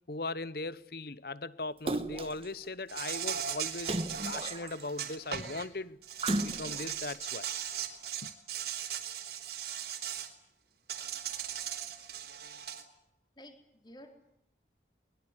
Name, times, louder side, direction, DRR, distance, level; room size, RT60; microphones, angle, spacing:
voice 1, 0.1-4.0 4.3-6.0 6.3-7.5 8.2-8.3, left 2 dB, 55° left, 1.0 m, -39 dB
Splash splatter, 1.9-2.5 3.8-5.0 6.2-7.0 7.6-7.7, right 1 dB, 30° right, 1.4 m, -35 dB
Insect, 2.9-5.6 6.0-10.3 10.9-12.8, right 9 dB, 65° right, 3.6 m, -38 dB
voice 2, 13.4-14.3, equal, 25° left, 3.8 m, -53 dB
23.0 x 21.5 x 9.9 m
head